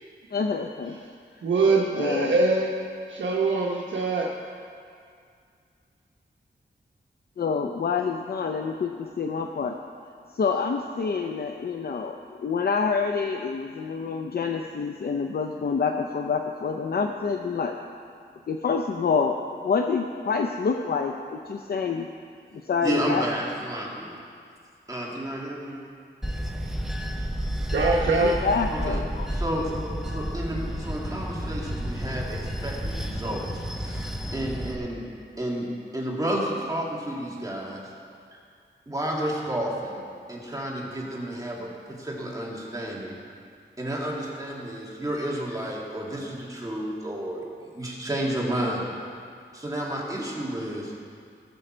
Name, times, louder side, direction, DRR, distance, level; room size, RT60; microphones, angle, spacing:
voice 1, 0.3-1.0 1.9-2.4 7.4-9.8 10.3-17.7 18.5-19.4 19.6-22.1 22.7-23.3 28.2-29.3, left 5 dB, 55° left, 4 dB, 0.6 m, -27 dB
voice 2, 1.4-2.7 3.1-4.3 27.7-28.3, right 3 dB, 90° right, -3 dB, 1.1 m, -23 dB
voice 3, 22.8-24.1 24.9-25.8 28.9-29.0 29.3-33.4 33.8-35.0 35.4-35.7 35.9-37.8 38.9-40.0 40.3-43.2 43.8-48.9 49.5-50.9, right 1 dB, 20° right, -4 dB, 2.2 m, -31 dB
Bell / Train, 26.2-34.8, equal, ahead, 0.8 m, -31 dB
19.0 x 7.0 x 4.4 m, 2.3 s
wide cardioid pair, 110°, 19 cm